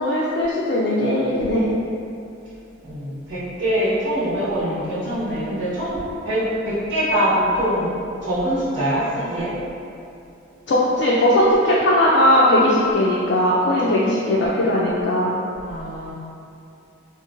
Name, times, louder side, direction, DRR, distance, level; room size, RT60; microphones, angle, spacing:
voice 1, 0.0-1.7 10.7-15.4, left 1 dB, 55° left, -6 dB, 0.3 m, -18 dB
voice 2, 2.8-7.9 8.2-9.5 15.6-16.1, equal, 70° right, -12 dB, 1.3 m, -23 dB
2.9 x 2.5 x 2.5 m, 2.6 s
head